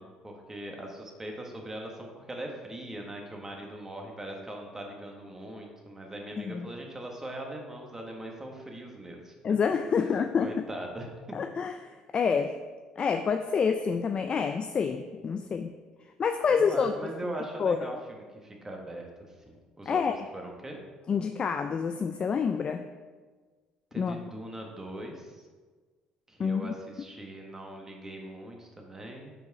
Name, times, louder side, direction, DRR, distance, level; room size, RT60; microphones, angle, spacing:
voice 1, 0.0-9.3 10.4-11.5 16.5-20.0 20.3-20.8 23.9-25.4 26.3-29.3, right 1 dB, 20° right, 1 dB, 1.4 m, -41 dB
voice 2, 6.4-6.7 9.4-10.5 11.3-12.5 13.0-15.7 16.2-16.9 17.6-18.0 19.9-20.1 21.1-22.8 24.0-24.2 26.4-26.7, left 6 dB, 40° left, 7 dB, 0.4 m, -28 dB
5.5 x 4.7 x 4.7 m, 1.4 s
supercardioid pair, 75°, 3 cm